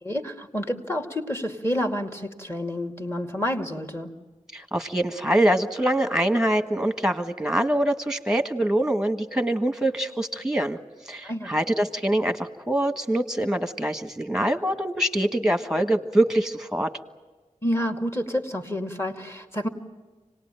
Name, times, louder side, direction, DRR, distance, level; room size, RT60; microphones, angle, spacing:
voice 1, 0.0-4.2 11.2-11.6 17.6-19.7, equal, 20° left, 4 dB, 2.3 m, -29 dB
voice 2, 4.5-10.8 11.1-16.9, right 1 dB, 5° right, 7 dB, 1.6 m, -24 dB
25.5 x 19.0 x 9.1 m, 1.3 s
cardioid pair, 40°, 13 cm